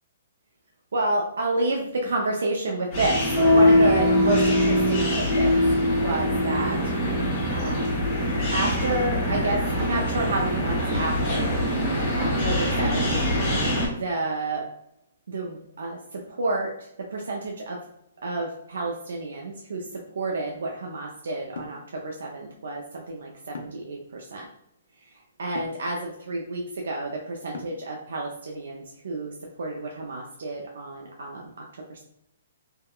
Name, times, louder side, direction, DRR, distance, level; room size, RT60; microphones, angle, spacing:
voice 1, 0.9-5.5 6.0-6.8 7.5-7.8 8.5-11.5 12.2-13.1 13.9-14.7 15.3-17.8 18.2-24.5 25.4-32.0, right 2 dB, 75° right, 0 dB, 0.4 m, -30 dB
sound 1, 2.9-13.9, left 1 dB, 25° left, 0.9 m, -23 dB
sound 2, 21.6-21.8 23.5-23.9 25.5-25.8 27.5-27.9, left 5 dB, 70° left, 0.5 m, -38 dB
3.4 x 2.1 x 2.2 m, 0.77 s
hypercardioid pair, 175°, 0 cm